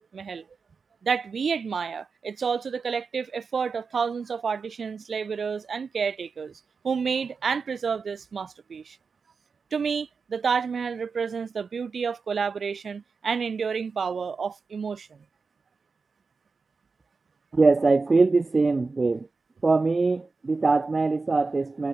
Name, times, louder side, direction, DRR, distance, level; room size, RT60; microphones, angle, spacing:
voice 1, 0.1-0.4 1.0-6.5 6.8-9.0 9.7-15.1, right 6 dB, 65° right, 2.8 m, -29 dB
voice 2, 17.5-19.3 19.6-21.9, right 3 dB, 35° right, 0.7 m, -22 dB
wide cardioid pair, 160°, 0 cm